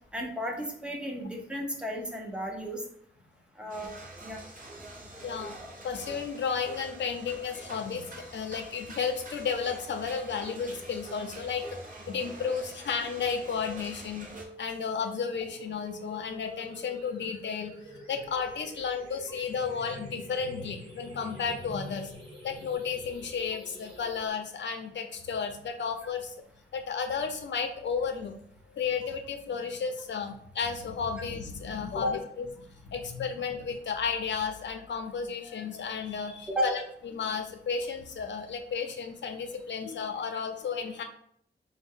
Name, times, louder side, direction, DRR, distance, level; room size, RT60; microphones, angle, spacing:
voice 1, 0.1-2.8 3.6-3.9 4.2-4.4 36.5-36.7, equal, 5° right, 1 dB, 0.6 m, -34 dB
sound 1, 3.7-14.4, right 1 dB, 45° right, 0.7 m, -46 dB
voice 2, 5.2-5.6 5.8-11.6 12.1-14.3 14.6-22.1 22.4-26.3 26.7-28.3 28.7-41.0, left 6 dB, 70° left, 5 dB, 0.5 m, -33 dB
sound 2, 14.3-24.3, right 1 dB, 25° right, 1.3 m, -48 dB
4.1 x 2.1 x 3.5 m, 0.68 s
wide cardioid pair, 155°, 20 cm